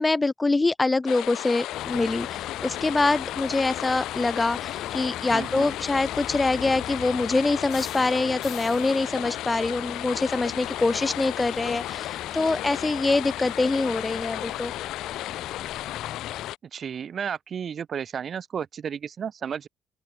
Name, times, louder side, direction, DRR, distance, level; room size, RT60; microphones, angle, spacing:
voice 1, 0.0-14.7, left 3 dB, 20° left, 2.8 m, -25 dB
sound 1, 1.1-16.6, left 15 dB, 90° left, 3.3 m, -34 dB
sound 2, 1.7-16.5, left 10 dB, 70° left, 5.3 m, -40 dB
voice 2, 5.3-5.7 16.7-19.7, right 7 dB, 55° right, 4.1 m, -33 dB
open air
cardioid pair, 90°, 0 cm